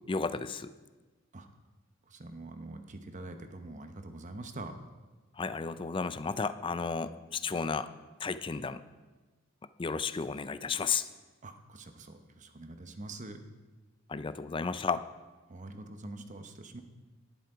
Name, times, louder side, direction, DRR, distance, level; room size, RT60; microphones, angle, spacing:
voice 1, 0.1-0.7 5.4-7.9 8.2-8.8 9.8-11.1 14.1-15.1, left 5 dB, 25° left, 13 dB, 0.4 m, -33 dB
voice 2, 2.1-4.7 11.4-13.4 15.5-16.8, right 2 dB, 40° right, 7 dB, 0.9 m, -44 dB
11.0 x 10.5 x 4.9 m, 1.2 s
head